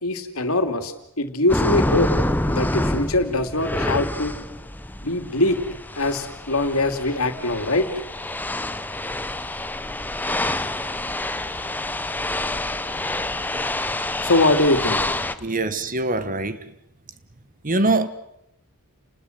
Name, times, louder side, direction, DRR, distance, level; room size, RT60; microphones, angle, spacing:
voice 1, 0.0-2.1 2.5-4.4 5.0-5.6 6.0-7.9 14.2-15.0, left 2 dB, 70° left, 2.9 m, -22 dB
sound 1, 1.5-15.4, left 1 dB, 10° left, 0.9 m, -27 dB
voice 2, 15.4-16.6 17.6-18.1, right 2 dB, 40° right, 1.5 m, -23 dB
30.0 x 20.0 x 8.1 m
head